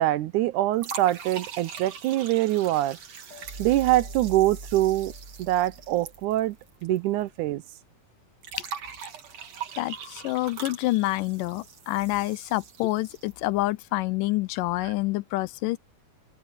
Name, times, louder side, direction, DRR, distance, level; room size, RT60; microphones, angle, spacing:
voice 1, 0.0-3.0 3.6-5.1 5.4-6.6 6.8-7.6, right 15 dB, 75° right, 2.1 m, -24 dB
sound 1, 0.8-7.0 7.2-7.3 8.4-13.5, right 7 dB, 55° right, 3.2 m, -42 dB
sound 2, 3.3-6.5, right 2 dB, 30° right, 3.4 m, -42 dB
voice 2, 9.8-15.8, left 18 dB, 80° left, 2.3 m, -27 dB
open air
omnidirectional pair, 3.8 m